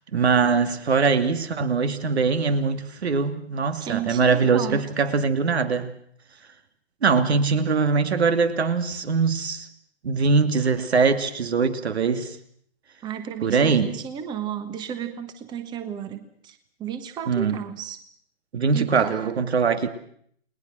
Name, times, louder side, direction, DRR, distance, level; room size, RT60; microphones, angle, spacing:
voice 1, 0.1-5.9 7.0-9.7 10.0-12.4 13.4-14.0 17.3-17.6 18.5-19.9, right 5 dB, 70° right, 2.8 m, -22 dB
voice 2, 3.8-4.8 13.0-18.0 18.7-19.3, right 9 dB, 15° right, 1.3 m, -33 dB
30.0 x 19.5 x 6.4 m
hypercardioid pair, 140°, 33 cm